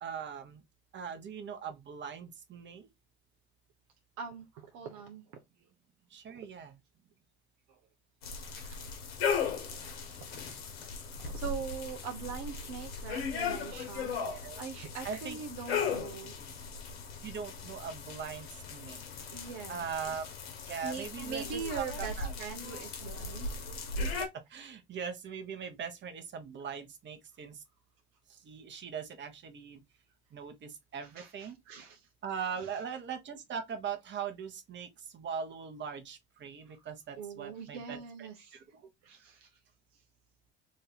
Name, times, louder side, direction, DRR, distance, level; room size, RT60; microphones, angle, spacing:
voice 1, 0.0-0.6 0.9-2.9 6.1-6.7 14.2-14.6 15.0-15.4 17.2-19.0 19.7-20.3 20.7-22.3 24.5-27.6 28.3-29.8 30.3-31.6 32.2-38.9, right 7 dB, 40° right, 1.1 m, -40 dB
voice 2, 4.2-5.7 6.3-6.4 7.7-7.8 8.6-8.8 9.4-9.5 10.2-10.6 11.2-16.3 19.3-19.8 20.8-23.5 31.0-32.1 32.6-32.7 37.2-38.6 39.0-39.5, right 6 dB, 60° right, 0.9 m, -42 dB
sound 1, 8.2-24.3, left 5 dB, 85° left, 1.1 m, -37 dB
3.1 x 2.7 x 4.0 m
hypercardioid pair, 75°, 30 cm